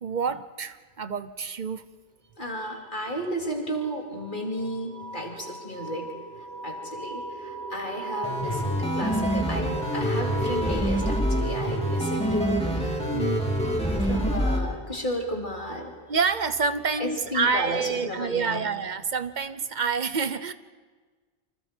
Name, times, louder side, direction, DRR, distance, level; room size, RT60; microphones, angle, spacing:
voice 1, 0.0-1.8 16.1-20.5, right 5 dB, 50° right, 12 dB, 1.0 m, -27 dB
voice 2, 2.4-6.1 6.6-13.4 14.0-15.9 17.0-18.7, equal, 50° left, 0 dB, 3.4 m, -33 dB
sound 1, 3.8-18.2, right 2 dB, 75° right, 5.6 m, -37 dB
sound 2, 8.2-14.6, equal, 5° left, 3.1 m, -26 dB
29.5 x 24.5 x 4.6 m, 1.4 s
omnidirectional pair, 1.1 m